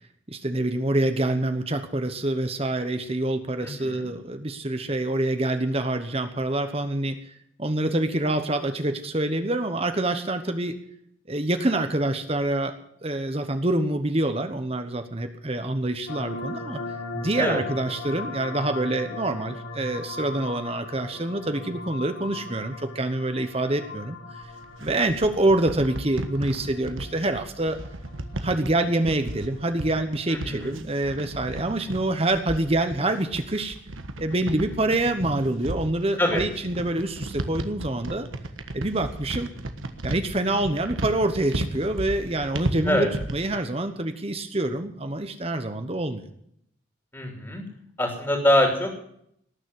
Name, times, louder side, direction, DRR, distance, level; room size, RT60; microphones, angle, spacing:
voice 1, 0.3-7.3 7.6-10.7 11.3-12.7 13.0-16.8 17.1-24.2 24.8-27.8 28.3-33.8 34.2-38.3 38.7-39.5 40.0-46.2, right 1 dB, 30° right, 8 dB, 1.1 m, -26 dB
voice 2, 3.6-4.1 17.4-17.6 30.3-30.7 36.2-36.4 42.9-43.1 47.1-47.6 48.0-48.9, left 1 dB, 15° left, 2 dB, 3.0 m, -24 dB
sound 1, 16.1-30.7, left 3 dB, 85° left, 2.6 m, -39 dB
sound 2, 24.4-43.5, right 1 dB, 80° right, 1.5 m, -34 dB
19.0 x 7.2 x 9.6 m, 0.71 s
head